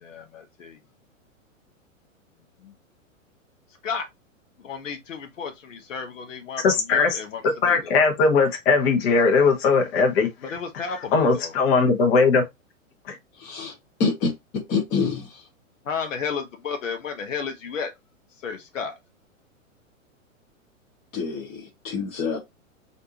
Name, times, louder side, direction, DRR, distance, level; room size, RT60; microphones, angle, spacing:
voice 1, 0.0-0.8 2.6-2.7 3.8-4.1 4.6-7.9 10.4-11.5 15.8-17.9 18.4-18.9, left 6 dB, 70° left, 1.0 m, -33 dB
voice 2, 6.6-7.2 7.6-10.3 11.1-12.4 13.1-13.2, left 4 dB, 50° left, 1.1 m, -19 dB
voice 3, 13.4-13.7 14.0-15.5 21.1-22.4, left 4 dB, 25° left, 0.9 m, -27 dB
3.3 x 2.6 x 2.8 m
figure-of-eight pair, 110°, 40 cm